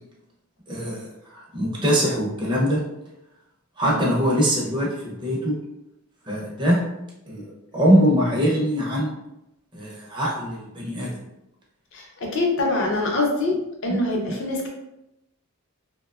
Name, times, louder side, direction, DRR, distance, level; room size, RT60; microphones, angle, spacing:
voice 1, 0.7-1.1 1.3-2.8 3.8-5.6 6.3-6.8 7.3-7.4 7.7-9.1 9.7-11.2 14.3-14.4, equal, 20° right, -4 dB, 0.5 m, -22 dB
voice 2, 11.9-13.5 13.8-14.7, left 2 dB, 55° left, 0 dB, 0.6 m, -24 dB
2.8 x 2.1 x 2.3 m, 0.88 s
head